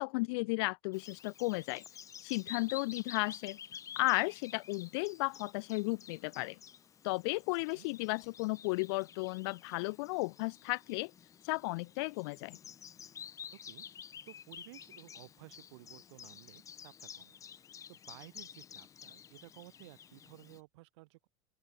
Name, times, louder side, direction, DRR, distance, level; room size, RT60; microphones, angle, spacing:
voice 1, 0.0-1.8 2.2-3.6 4.0-6.6 7.0-11.1 11.4-12.6, left 27 dB, 60° left, 0.9 m, -34 dB
Bird vocalization bird call bird song, 0.9-20.6, left 8 dB, 20° left, 1.2 m, -51 dB
voice 2, 14.3-17.4 17.9-21.3, right 22 dB, 70° right, 2.5 m, -55 dB
open air
supercardioid pair, 155°, 15 cm